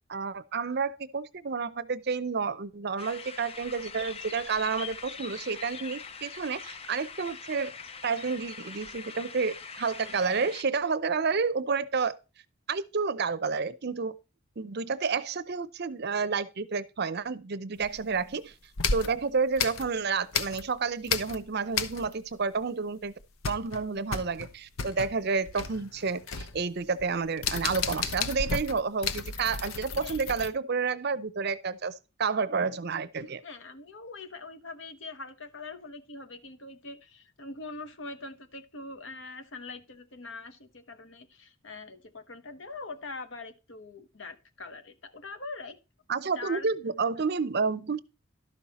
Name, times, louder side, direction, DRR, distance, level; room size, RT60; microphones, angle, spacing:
voice 1, 0.1-7.7 8.0-12.2 12.7-14.1 14.6-18.5 18.9-23.1 23.5-31.9 32.2-33.4 46.1-48.0, right 5 dB, 50° right, 0.6 m, -30 dB
sound 1, 3.0-10.6, left 5 dB, 30° left, 0.5 m, -43 dB
sound 2, 17.8-18.3 18.8-20.8 21.0-22.4 22.6-22.7 23.0-30.5, left 5 dB, 90° left, 0.8 m, -33 dB
voice 2, 29.9-30.2 33.2-45.8 46.4-46.7 47.2-47.3, left 3 dB, 60° left, 1.1 m, -43 dB
12.0 x 5.7 x 4.2 m
head